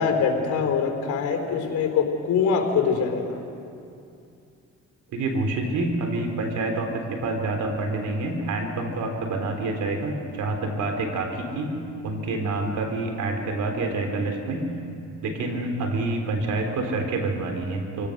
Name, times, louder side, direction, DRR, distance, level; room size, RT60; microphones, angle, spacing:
voice 1, 0.0-3.4, left 6 dB, 75° left, 3 dB, 4.1 m, -23 dB
voice 2, 5.1-11.7 12.0-14.7 15.2-18.1, right 2 dB, 80° right, 3 dB, 3.5 m, -27 dB
25.5 x 16.5 x 6.6 m, 2.5 s
cardioid pair, 90°, 30 cm